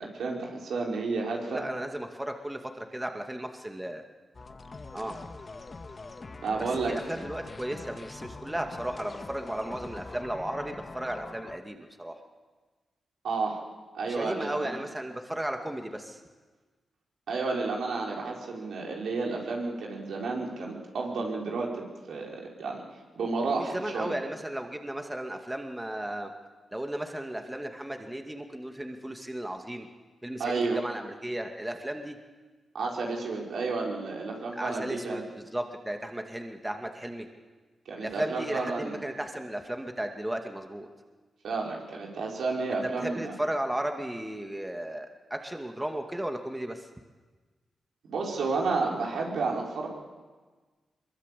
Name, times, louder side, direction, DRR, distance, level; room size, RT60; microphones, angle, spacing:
voice 1, 0.2-1.6 6.4-7.0 13.2-13.6 13.9-14.8 17.3-22.8 23.2-24.1 30.4-30.8 32.7-35.2 37.8-39.0 41.4-43.3 48.1-49.9, right 3 dB, 80° right, -1 dB, 5.1 m, -31 dB
voice 2, 1.5-4.0 4.9-5.2 6.6-12.1 14.0-16.2 23.4-26.3 26.7-29.9 30.2-32.2 34.5-37.3 38.0-40.9 43.0-46.9, right 1 dB, 15° right, 4 dB, 2.3 m, -35 dB
sound 1, 4.3-11.6, left 3 dB, 40° left, 1.9 m, -43 dB
22.5 x 22.0 x 8.5 m, 1.3 s
cardioid pair, 60°, 0 cm